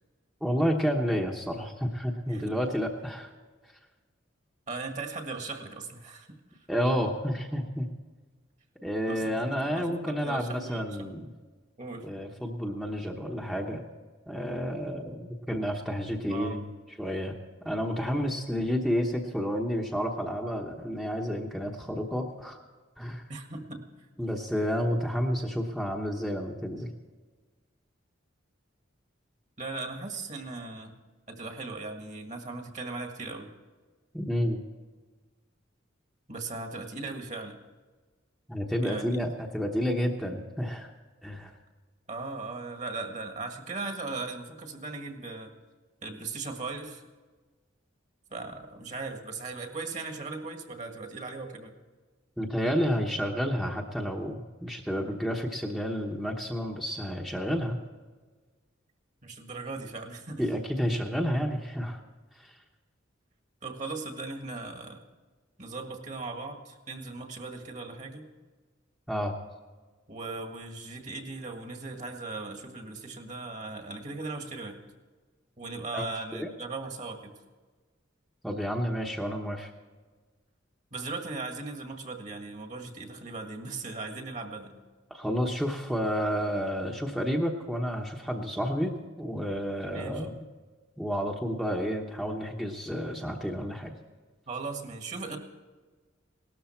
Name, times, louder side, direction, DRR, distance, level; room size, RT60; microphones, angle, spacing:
voice 1, 0.4-3.3 6.7-7.9 8.8-11.3 12.0-13.8 14.3-16.7 17.0-17.3 17.6-22.6 23.0-23.2 24.2-26.9 34.1-34.6 38.5-40.9 41.2-41.5 52.4-57.8 60.4-62.0 62.3-62.6 69.1-69.3 75.9-76.1 76.3-76.5 78.4-79.7 85.1-90.4 91.0-93.9, equal, ahead, 0 dB, 1.0 m, -30 dB
voice 2, 4.7-6.7 9.1-11.2 11.8-12.1 16.3-16.6 23.3-23.9 29.6-30.9 31.3-33.5 36.3-37.6 38.8-39.2 42.1-45.5 46.0-47.0 48.3-51.7 59.2-60.5 63.6-65.0 65.6-68.3 70.1-74.8 75.6-77.4 80.9-84.8 89.9-90.2 94.5-95.4, right 3 dB, 40° right, 4 dB, 1.8 m, -38 dB
18.5 x 13.0 x 4.5 m, 1.3 s
head